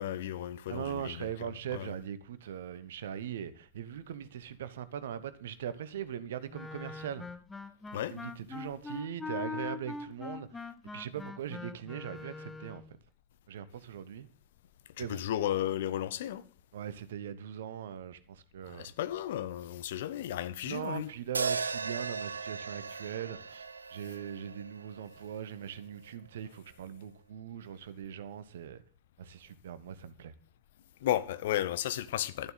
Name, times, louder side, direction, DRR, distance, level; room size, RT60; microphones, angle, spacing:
voice 1, 0.0-1.3 1.7-1.9 7.9-8.1 15.0-16.4 18.6-21.1 31.0-32.5, left 12 dB, 55° left, 1.0 m, -34 dB
voice 2, 0.7-7.2 8.1-12.8 13.5-14.3 15.0-15.2 16.7-18.9 20.6-23.6 23.9-28.8 29.2-30.3, right 9 dB, 60° right, 1.1 m, -40 dB
Wind instrument woodwind instrument, 6.5-12.9, left 4 dB, 10° left, 1.0 m, -42 dB
sound 1, 21.3-25.6, right 5 dB, 75° right, 0.5 m, -37 dB
12.0 x 11.0 x 4.1 m
figure-of-eight pair, 90°, 0 cm